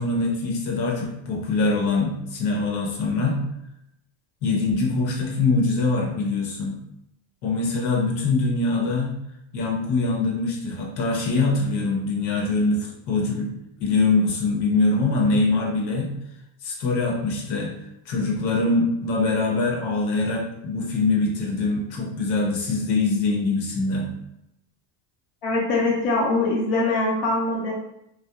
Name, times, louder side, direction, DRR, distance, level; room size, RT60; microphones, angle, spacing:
voice 1, 0.0-3.4 4.4-6.8 7.4-9.1 9.5-13.5 13.8-16.1 16.6-17.7 18.1-24.1, left 3 dB, 75° left, -1 dB, 0.9 m, -23 dB
voice 2, 25.4-27.7, left 2 dB, 45° left, -4 dB, 0.7 m, -22 dB
2.8 x 2.0 x 2.3 m, 0.83 s
cardioid pair, 160°, 49 cm